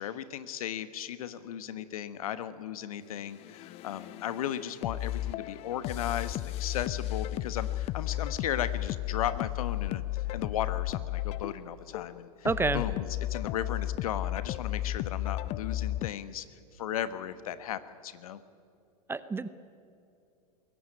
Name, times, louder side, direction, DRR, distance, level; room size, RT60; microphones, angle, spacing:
voice 1, 0.0-12.5 12.7-16.4 16.7-18.4, left 10 dB, 65° left, 13 dB, 1.2 m, -36 dB
sound 1, 3.4-16.1, left 15 dB, 30° left, 0.4 m, -34 dB
voice 2, 12.4-12.8 19.1-19.5, right 4 dB, 10° right, 15 dB, 0.7 m, -28 dB
22.0 x 16.5 x 9.7 m, 2.5 s
figure-of-eight pair, 95°, 20 cm